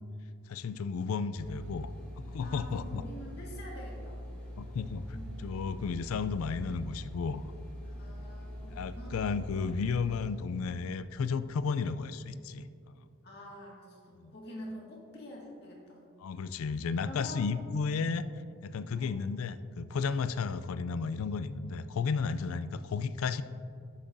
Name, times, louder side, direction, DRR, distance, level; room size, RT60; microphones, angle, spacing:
voice 1, 0.5-1.9 2.2-3.0 4.6-7.4 8.7-12.6 14.1-14.3 16.2-18.3 18.6-23.4, left 5 dB, 80° left, 13 dB, 0.4 m, -33 dB
sound 1, 1.4-10.3, equal, 5° left, 2.0 m, -43 dB
voice 2, 2.4-4.3 5.1-5.5 7.8-9.2 9.5-9.7 13.2-16.0 17.0-17.5 19.0-19.2, equal, 50° left, -3 dB, 1.9 m, -46 dB
11.5 x 8.3 x 2.6 m, 2.4 s
head